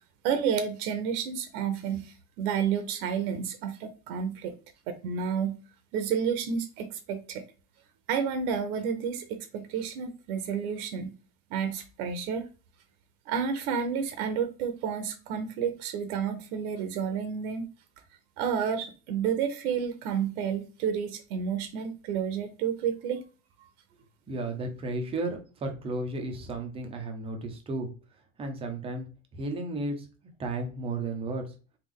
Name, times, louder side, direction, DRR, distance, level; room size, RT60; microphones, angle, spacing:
voice 1, 0.2-4.5 4.9-5.6 5.9-7.5 8.1-11.1 11.5-12.4 13.3-17.7 18.4-23.2, right 7 dB, 80° right, 0.8 m, -30 dB
voice 2, 24.3-27.9 28.4-29.1 29.3-30.1 30.4-31.5, right 2 dB, 15° right, 0.5 m, -33 dB
3.4 x 2.3 x 3.7 m
cardioid pair, 155°, 44 cm